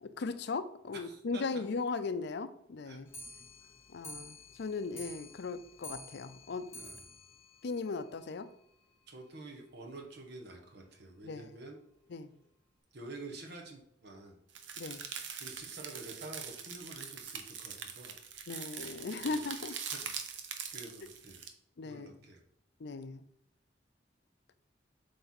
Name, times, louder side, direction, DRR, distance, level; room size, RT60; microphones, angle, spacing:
voice 1, 0.0-3.1 3.9-6.8 7.6-8.5 11.2-11.5 12.1-12.3 14.8-15.0 18.5-19.7 21.8-22.1 22.8-23.2, left 4 dB, 65° left, 12 dB, 0.5 m, -38 dB
voice 2, 1.0-1.4 2.8-3.0 6.8-7.0 9.1-11.8 12.9-14.4 15.4-18.1 19.2-19.3 19.9-20.1 20.5-21.4 21.8-22.4, right 2 dB, 60° right, 2 dB, 1.2 m, -48 dB
Clock, 3.1-8.6 8.9-9.0 9.3-9.4 9.7-9.8 10.0-10.1 10.8-10.9 11.6-11.7 12.4-12.5, left 1 dB, 15° left, 1.3 m, -51 dB
sound 1, 14.5-21.5, right 7 dB, 75° right, 0.8 m, -43 dB
7.7 x 3.4 x 4.3 m, 0.72 s
head